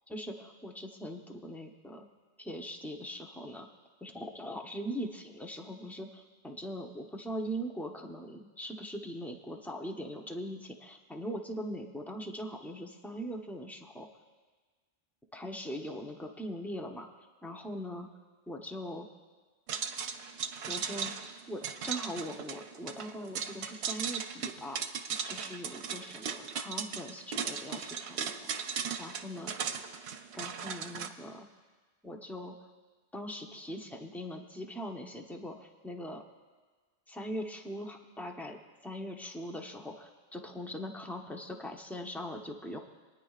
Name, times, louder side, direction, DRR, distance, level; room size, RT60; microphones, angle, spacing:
voice 1, 0.1-2.1 2.4-3.7 4.0-14.1 15.3-17.1 17.4-18.1 18.5-19.1 20.7-24.9 25.3-28.6 29.0-29.6 30.3-31.5 32.0-32.5 33.1-36.2 37.1-42.8, equal, ahead, 1 dB, 0.8 m, -41 dB
sound 1, 19.7-31.1, right 7 dB, 80° right, 0.9 m, -37 dB
26.0 x 9.7 x 2.4 m, 1.4 s
omnidirectional pair, 1.1 m